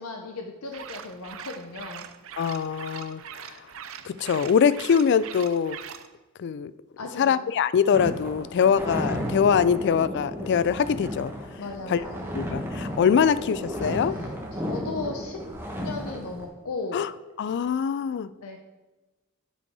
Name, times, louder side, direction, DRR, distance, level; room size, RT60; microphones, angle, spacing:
voice 1, 0.0-2.1 7.0-7.4 11.6-12.3 14.0-15.4 15.8-17.1 18.4-18.6, left 3 dB, 85° left, 3 dB, 0.7 m, -36 dB
sound 1, 0.7-6.1, right 8 dB, 70° right, 0.6 m, -42 dB
voice 2, 2.4-3.6 4.0-5.8 6.4-6.7 7.2-11.3 11.9-12.0 12.3-14.2 16.9-17.1 17.4-18.3, left 7 dB, 55° left, 16 dB, 0.3 m, -23 dB
sound 2, 7.9-16.5, equal, 10° right, 1.3 m, -33 dB
9.9 x 5.4 x 4.7 m, 1.1 s
head